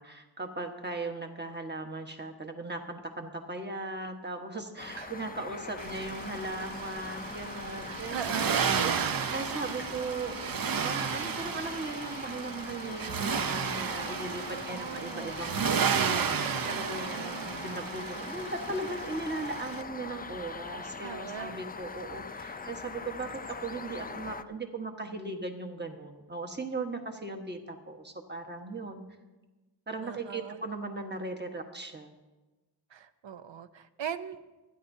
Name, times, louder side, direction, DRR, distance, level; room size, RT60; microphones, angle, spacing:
voice 1, 0.0-9.1 9.3-10.4 10.8-29.0 29.9-32.1, right 2 dB, 25° right, 4 dB, 1.3 m, -38 dB
sound 1, 4.8-24.4, left 4 dB, 20° left, 0.4 m, -42 dB
Accelerating revving vroom, 5.8-19.8, right 6 dB, 50° right, 0.6 m, -33 dB
voice 2, 7.9-8.7 9.0-9.3 14.5-15.4 17.0-17.7 21.0-21.6 30.0-30.6 32.9-34.4, right 8 dB, 90° right, 12 dB, 0.7 m, -40 dB
26.5 x 10.0 x 2.7 m, 1.2 s
wide cardioid pair, 120°, 43 cm